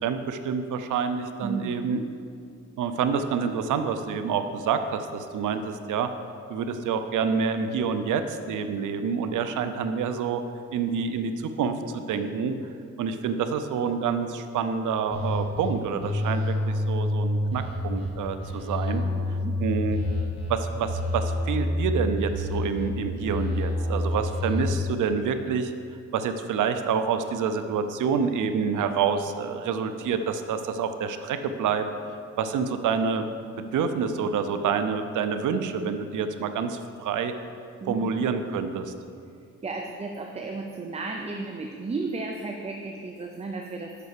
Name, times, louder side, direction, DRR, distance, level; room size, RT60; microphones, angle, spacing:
voice 1, 0.0-2.0 2.8-6.1 6.5-10.4 10.7-12.6 13.0-19.0 19.6-20.0 20.5-25.7 26.1-31.8 32.4-33.3 33.7-37.3 37.9-38.9, right 6 dB, 85° right, 9 dB, 0.6 m, -27 dB
voice 2, 1.4-2.0 9.3-9.5 19.0-19.5 37.8-38.2 39.6-44.1, right 3 dB, 20° right, 2 dB, 0.5 m, -34 dB
sound 1, 15.1-15.7 16.0-18.1 18.4-20.5 20.8-22.9 23.2-24.7, left 1 dB, 20° left, 2.0 m, -28 dB
6.7 x 5.8 x 6.7 m, 2.3 s
cardioid pair, 125°, 30 cm